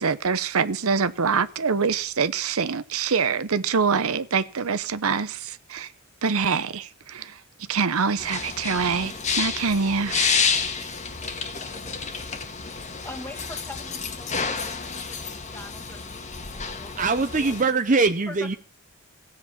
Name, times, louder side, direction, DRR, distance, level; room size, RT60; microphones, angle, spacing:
voice 1, 0.0-5.9 6.2-7.4 7.7-10.4, right 5 dB, 75° right, 0.8 m, -25 dB
sound 1, 8.2-17.6, left 5 dB, 30° left, 1.7 m, -30 dB
voice 2, 12.7-17.1 17.5-17.6 18.3-18.6, left 2 dB, 10° left, 1.9 m, -43 dB
voice 3, 17.0-18.6, right 3 dB, 35° right, 0.7 m, -22 dB
16.0 x 8.1 x 7.1 m
head